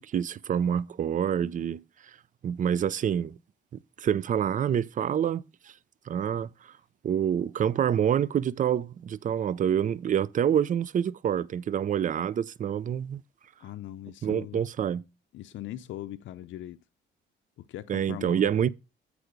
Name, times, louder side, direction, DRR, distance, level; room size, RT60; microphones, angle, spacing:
voice 1, 0.1-1.8 2.4-3.4 4.0-5.4 6.1-6.5 7.0-13.2 14.2-15.0 17.9-18.7, right 9 dB, 40° right, 0.5 m, -27 dB
voice 2, 13.6-14.6 15.3-16.8 17.6-18.5, left 13 dB, 75° left, 0.5 m, -40 dB
8.0 x 4.8 x 5.0 m
cardioid pair, 90°, 20 cm